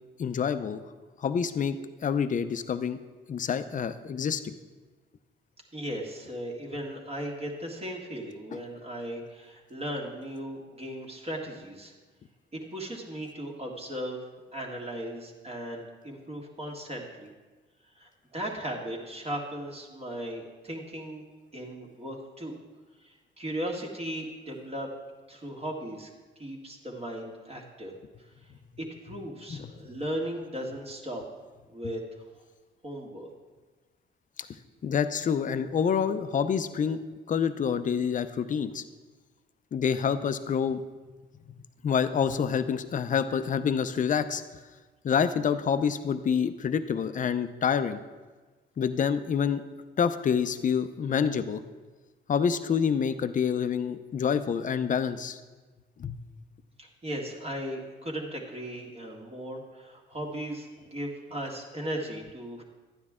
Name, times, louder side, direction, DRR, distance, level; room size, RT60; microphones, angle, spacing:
voice 1, 0.2-0.8 1.2-3.0 3.3-4.5 8.5-8.6 29.5-29.7 34.8-37.0 37.3-38.8 39.7-40.8 41.8-44.4 45.0-48.0 48.8-49.6 50.0-51.6 52.3-55.4 56.0-56.2, left 7 dB, 40° left, 11 dB, 0.6 m, -27 dB
voice 2, 5.7-11.9 12.5-14.2 14.5-17.3 17.9-21.2 21.5-22.5 23.0-24.9 25.3-26.1 26.3-27.9 28.8-31.2 31.7-32.0 32.8-33.3 56.8-62.6, right 1 dB, 30° right, -2 dB, 1.8 m, -37 dB
12.0 x 9.4 x 3.7 m, 1.3 s
cardioid pair, 90°, 20 cm